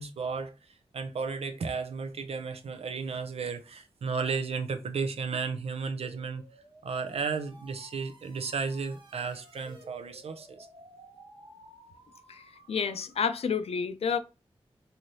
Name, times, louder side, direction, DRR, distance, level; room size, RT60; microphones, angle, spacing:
voice 1, 0.0-6.4 6.8-10.7, right 5 dB, 80° right, 0.5 m, -34 dB
sound 1, 6.0-13.5, right 1 dB, 50° right, 1.2 m, -54 dB
voice 2, 12.7-14.2, left 6 dB, 80° left, 0.4 m, -29 dB
3.1 x 2.7 x 2.7 m
cardioid pair, 50°, 10 cm